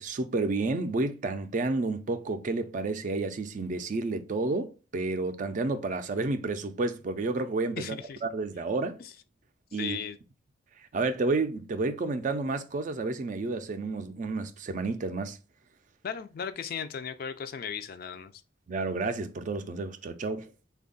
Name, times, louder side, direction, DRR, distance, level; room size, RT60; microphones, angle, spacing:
voice 1, 0.0-9.0 9.7-10.0 10.9-15.4 18.7-20.5, right 3 dB, 45° right, 0.4 m, -30 dB
voice 2, 7.8-8.2 9.0-9.1 9.7-10.2 16.0-18.3, left 7 dB, 55° left, 0.4 m, -36 dB
3.5 x 2.3 x 3.8 m
head